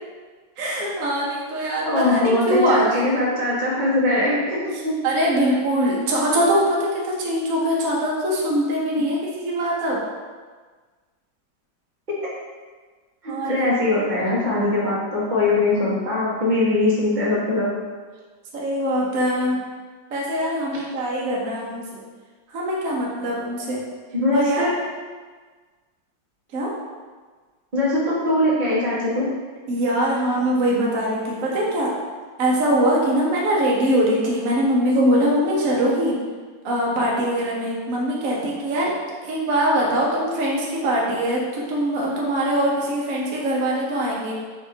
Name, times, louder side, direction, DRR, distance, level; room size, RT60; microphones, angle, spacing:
voice 1, 0.6-2.2 2.5-3.0 5.0-10.0 13.3-13.7 18.5-19.6 20.1-22.0 22.5-23.8 24.3-24.6 26.5-26.7 29.7-31.9 32.4-36.2 36.6-38.9 39.2-44.3, equal, 60° right, -4 dB, 1.0 m, -22 dB
voice 2, 1.8-4.9 8.9-9.0 13.2-17.7 24.1-24.7 27.7-29.2, left 2 dB, 35° right, -8 dB, 0.8 m, -21 dB
4.3 x 2.5 x 4.3 m, 1.5 s
omnidirectional pair, 2.1 m